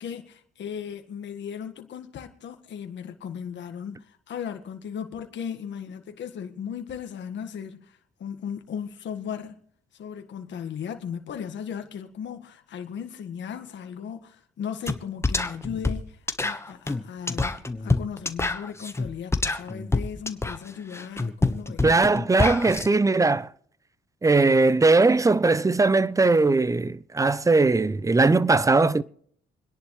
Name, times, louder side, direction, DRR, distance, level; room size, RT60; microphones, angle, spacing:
voice 1, 0.0-9.6 9.9-21.9, left 8 dB, 65° left, 1.7 m, -36 dB
sound 1, 14.9-15.0 15.2-22.9, left 2 dB, 15° left, 1.2 m, -27 dB
voice 2, 21.8-23.5 24.2-29.0, right 3 dB, 15° right, 0.6 m, -20 dB
28.0 x 10.5 x 3.2 m
cardioid pair, 90°, 20 cm